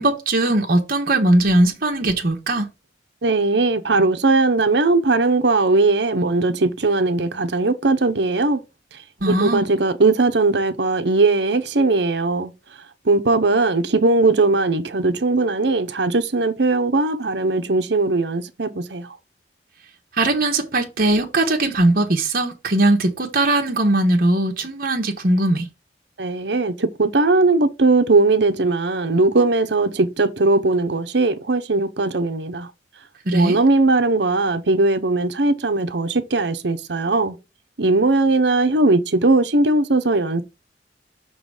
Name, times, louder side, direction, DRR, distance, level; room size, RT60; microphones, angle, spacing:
voice 1, 0.0-2.7 9.2-9.6 20.2-25.7 33.3-33.6, right 1 dB, 55° right, 1.2 m, -19 dB
voice 2, 3.2-8.6 9.3-12.5 13.1-19.1 26.2-32.7 33.3-37.4 37.8-40.4, right 3 dB, 70° right, 0.9 m, -19 dB
6.2 x 3.9 x 5.0 m
head